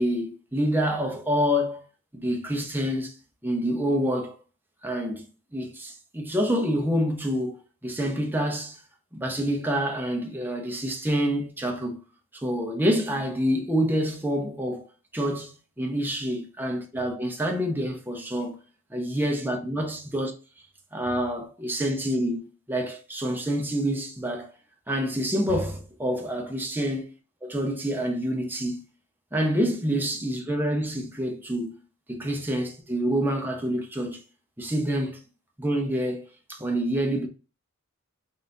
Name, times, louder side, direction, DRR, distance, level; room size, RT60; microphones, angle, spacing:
voice 1, 0.0-1.8 2.1-3.1 3.4-4.3 4.8-5.3 5.5-8.8 9.1-12.0 12.3-14.8 15.1-15.5 15.8-18.6 18.9-20.3 20.9-24.5 24.9-27.1 27.4-28.8 29.3-31.8 32.1-34.2 34.6-35.2 35.6-37.3, equal, 10° right, 0.8 m, -27 dB
4.0 x 4.0 x 2.5 m
head